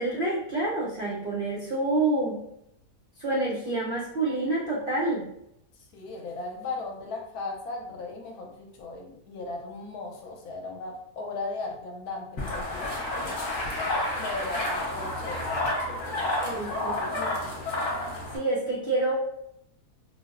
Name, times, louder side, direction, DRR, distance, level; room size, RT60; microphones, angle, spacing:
voice 1, 0.0-2.4 3.2-5.3 16.4-17.1 18.3-19.2, right 2 dB, 75° right, -4 dB, 0.4 m, -28 dB
voice 2, 5.9-12.8 14.2-17.7, left 3 dB, 70° left, 1 dB, 1.0 m, -37 dB
sound 1, 12.4-18.4, left 1 dB, 55° left, 1.0 m, -31 dB
Bicycle, 12.4-15.7, left 1 dB, 30° left, 0.4 m, -36 dB
4.0 x 2.0 x 2.4 m, 0.79 s
omnidirectional pair, 1.8 m